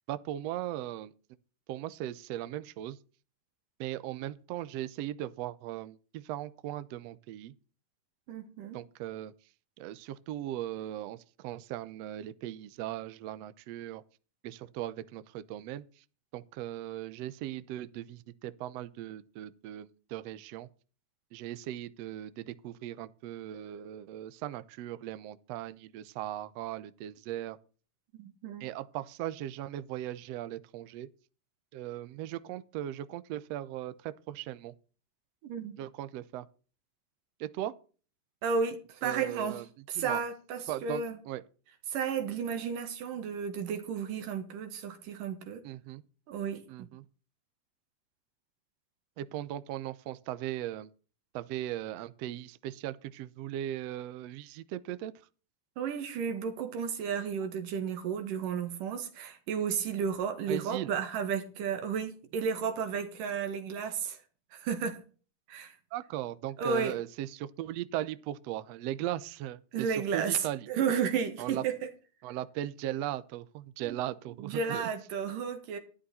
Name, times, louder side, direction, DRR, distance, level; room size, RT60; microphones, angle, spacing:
voice 1, 0.1-1.1 1.7-3.0 3.8-7.5 8.7-9.3 9.8-14.0 14.4-15.8 16.3-20.7 21.3-27.6 28.6-31.1 31.7-34.7 35.8-36.5 37.4-37.7 39.0-39.6 40.0-40.2 40.7-41.4 45.6-46.0 46.7-47.0 49.2-50.9 51.3-55.1 60.5-60.9 65.9-70.7 71.4-71.6 72.2-74.9, right 13 dB, 70° right, 1.6 m, -38 dB
voice 2, 8.3-8.8 28.1-28.7 35.4-35.8 38.4-39.6 39.9-41.2 41.9-45.6 46.3-46.9 55.8-64.2 64.5-65.0 65.5-65.8 66.6-67.0 69.7-71.8 73.8-74.0 74.4-75.8, right 6 dB, 90° right, 3.4 m, -33 dB
12.5 x 11.5 x 4.2 m
omnidirectional pair, 3.7 m